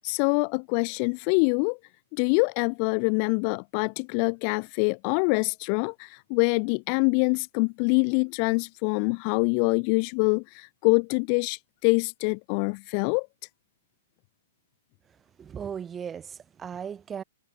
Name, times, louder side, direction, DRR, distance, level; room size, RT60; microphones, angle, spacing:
voice 1, 0.0-1.8 2.1-13.3, left 40 dB or more, 40° left, 0.8 m, -25 dB
voice 2, 15.1-17.2, right 7 dB, 20° right, 4.7 m, -37 dB
hypercardioid pair, 120°, 0 cm